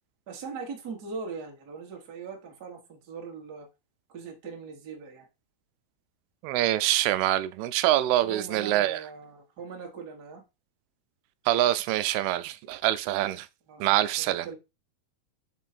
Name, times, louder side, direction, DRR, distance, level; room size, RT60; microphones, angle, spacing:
voice 1, 0.3-3.7 4.1-5.3 8.2-10.4 13.7-14.6, right 5 dB, 50° right, 1.2 m, -40 dB
voice 2, 6.4-9.0 11.5-13.5 13.8-14.5, right 14 dB, 85° right, 2.5 m, -25 dB
5.5 x 4.5 x 4.2 m
omnidirectional pair, 4.4 m